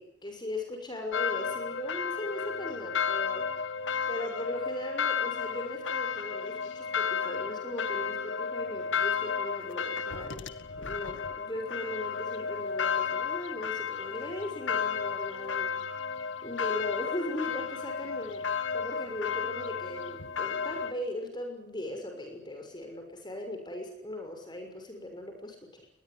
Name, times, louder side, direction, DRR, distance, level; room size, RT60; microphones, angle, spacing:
voice 1, 0.0-3.4 4.1-10.5 10.8-15.7 16.4-18.4 18.7-25.8, left 1 dB, 25° left, 3 dB, 6.4 m, -38 dB
sound 1, 1.1-20.9, left 6 dB, 90° left, 1.7 m, -33 dB
24.0 x 20.5 x 9.8 m, 0.70 s
head